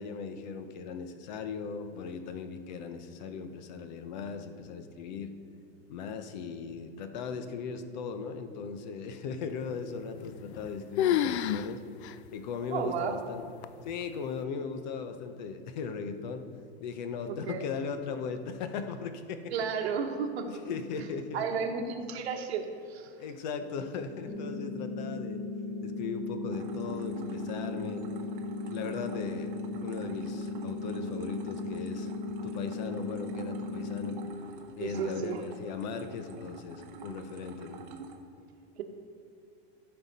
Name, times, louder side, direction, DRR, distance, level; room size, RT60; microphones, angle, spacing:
voice 1, 0.0-5.3 5.9-11.8 12.3-13.5 13.8-16.4 16.8-19.5 20.5-21.4 23.2-25.4 25.8-28.0 28.7-29.5 29.8-32.1 32.4-34.2 34.8-37.8, left 5 dB, 45° left, 8 dB, 0.7 m, -38 dB
sound 1, 10.2-10.7 11.0-11.7 12.0-12.1 12.8-12.9 13.6-14.0, left 11 dB, 85° left, 0.5 m, -28 dB
voice 2, 12.7-13.2 17.3-17.6 19.5-20.5 21.3-23.1 34.8-35.4, right 6 dB, 75° right, 3 dB, 1.3 m, -33 dB
sound 2, 24.2-34.3, left 3 dB, 5° left, 0.6 m, -37 dB
sound 3, 26.5-38.2, right 4 dB, 55° right, 1.1 m, -48 dB
15.0 x 5.7 x 4.1 m, 2.5 s
supercardioid pair, 175°, 32 cm